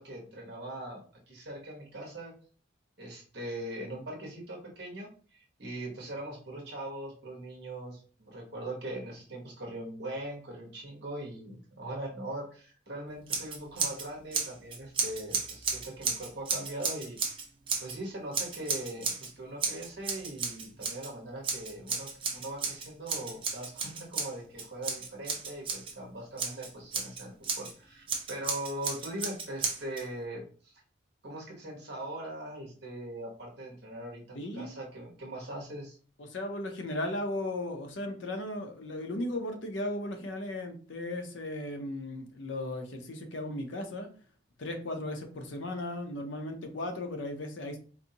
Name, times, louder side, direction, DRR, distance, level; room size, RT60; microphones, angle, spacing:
voice 1, 0.0-2.3 3.0-17.2 17.8-30.8 31.2-36.0, right 1 dB, 55° right, -1 dB, 1.0 m, -41 dB
Scissors, 13.3-14.1 14.3-18.0 18.3-19.3 19.6-21.1 21.4-25.9 26.4-27.7 28.1-30.0, right 5 dB, 25° right, 0.5 m, -34 dB
voice 2, 34.3-34.7 36.2-44.1 44.6-47.8, left 1 dB, 70° left, 5 dB, 0.6 m, -36 dB
4.0 x 2.6 x 2.7 m, 0.41 s
head